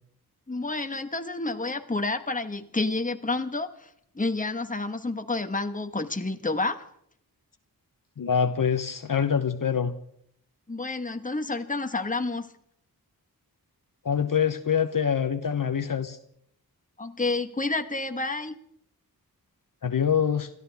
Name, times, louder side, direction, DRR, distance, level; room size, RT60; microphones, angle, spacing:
voice 1, 0.5-3.9 4.1-6.8 10.7-12.5 17.0-18.5, left 3 dB, 20° left, 7 dB, 1.3 m, -29 dB
voice 2, 8.2-9.9 14.0-16.2 19.8-20.5, left 7 dB, 60° left, 8 dB, 1.0 m, -25 dB
28.0 x 13.5 x 3.5 m, 0.71 s
wide cardioid pair, 75°, 38 cm